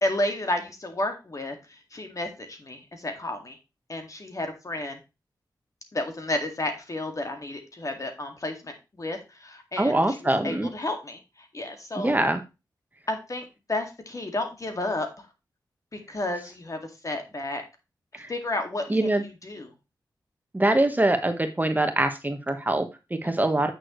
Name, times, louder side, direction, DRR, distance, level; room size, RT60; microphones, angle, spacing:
voice 1, 0.0-1.6 1.9-3.6 3.9-5.0 5.9-10.0 10.4-11.2 11.5-12.2 13.1-15.1 15.9-17.6 18.3-19.7 23.2-23.3, left 1 dB, 45° left, 5 dB, 2.1 m, -31 dB
voice 2, 9.8-10.7 11.9-12.4 18.1-18.3 18.9-19.2 20.5-23.7, right 1 dB, 20° right, 7 dB, 1.3 m, -24 dB
8.9 x 6.5 x 3.1 m, 0.26 s
cardioid pair, 60°, 8 cm